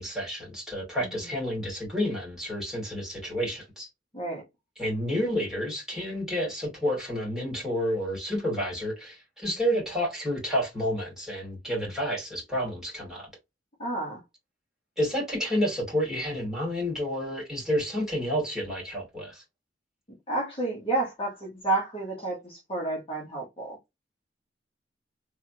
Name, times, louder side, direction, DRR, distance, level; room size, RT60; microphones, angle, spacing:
voice 1, 0.0-3.9 4.8-13.3 15.0-19.4, equal, 5° right, 2.5 m, -30 dB
voice 2, 13.8-14.2 20.3-23.8, right 2 dB, 30° left, 1.3 m, -30 dB
3.4 x 3.3 x 2.9 m
head